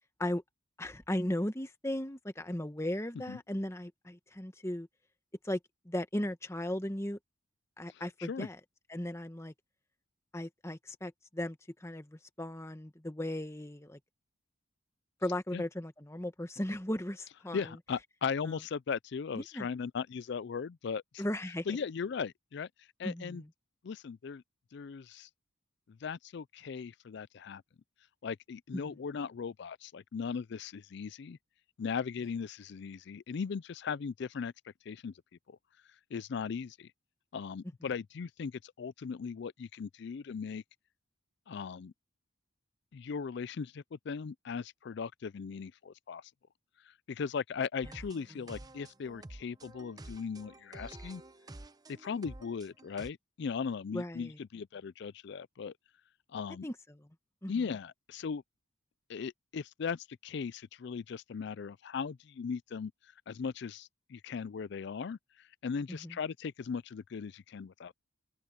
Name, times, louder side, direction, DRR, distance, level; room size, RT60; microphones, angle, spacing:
voice 1, 0.8-4.9 5.4-5.6 5.8-7.2 7.8-8.6 8.9-9.5 10.3-14.0 15.2-17.7 18.4-18.6 19.3-19.7 21.2-21.8 23.0-23.5 28.7-28.9 53.9-54.4 56.6-57.1 57.4-57.5 65.9-66.2, left 1 dB, 15° left, 1.2 m, -37 dB
voice 2, 7.9-8.5 15.5-15.6 17.5-21.2 21.7-22.7 23.0-23.4 23.8-24.4 24.7-25.3 25.9-27.6 28.2-31.4 31.8-34.5 34.9-35.1 35.5-35.6 36.1-36.9 37.3-40.6 41.5-41.9 42.9-46.3 46.9-51.2 51.9-55.7 56.3-56.7 57.5-58.4 59.1-62.9 63.3-68.0, left 6 dB, 55° left, 0.4 m, -38 dB
sound 1, 47.8-53.1, right 1 dB, 20° right, 0.7 m, -50 dB
head